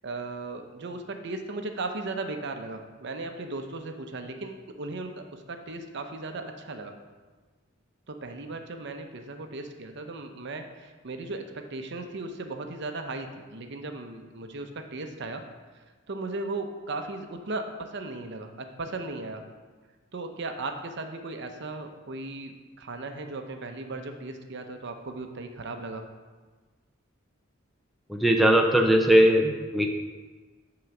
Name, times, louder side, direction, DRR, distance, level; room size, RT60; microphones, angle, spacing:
voice 1, 0.0-6.9 8.1-11.4 11.7-15.4 15.7-19.4 20.1-26.0, right 2 dB, 60° right, 5 dB, 0.7 m, -36 dB
voice 2, 28.1-29.9, right 1 dB, ahead, 2 dB, 0.5 m, -20 dB
9.7 x 3.9 x 5.9 m, 1.4 s
head